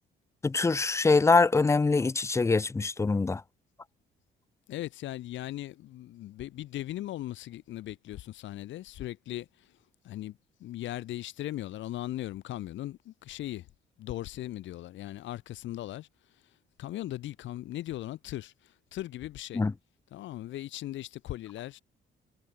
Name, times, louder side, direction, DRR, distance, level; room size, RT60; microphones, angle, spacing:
voice 1, 0.4-3.4 19.5-19.7, left 3 dB, 15° left, 0.4 m, -24 dB
voice 2, 4.7-9.7 10.0-13.7 14.0-16.1 16.8-19.6 20.1-21.8, left 14 dB, 70° left, 0.6 m, -38 dB
cardioid pair, 90°, 20 cm